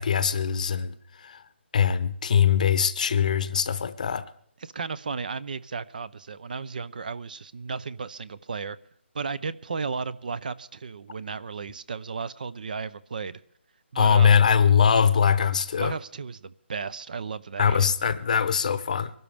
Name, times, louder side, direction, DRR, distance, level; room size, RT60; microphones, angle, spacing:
voice 1, 0.0-1.4 1.7-4.2 13.9-15.9 17.6-19.1, left 7 dB, 35° left, 0.8 m, -22 dB
voice 2, 4.6-8.8 9.1-13.4 13.9-14.4 15.8-17.9, right 5 dB, 45° right, 0.5 m, -34 dB
23.5 x 12.5 x 3.4 m
hypercardioid pair, 170°, 7 cm